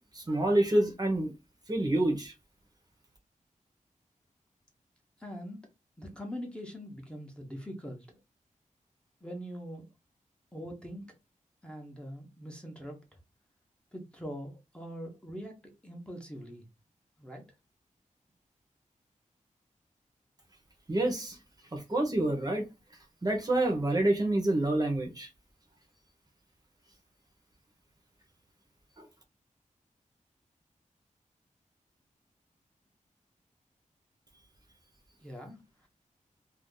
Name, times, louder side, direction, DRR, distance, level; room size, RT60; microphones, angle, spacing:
voice 1, 0.1-1.3 1.7-2.3 20.9-21.4 21.7-22.6 23.2-25.3 29.0-29.1, right 1 dB, 30° right, 0.8 m, -27 dB
voice 2, 5.2-5.6 6.0-8.2 9.2-9.9 10.5-11.1 11.6-13.0 13.9-15.5 15.8-16.7 17.2-17.4 35.2-35.9, equal, 5° left, 0.8 m, -42 dB
2.6 x 2.4 x 3.6 m
wide cardioid pair, 120°, 13 cm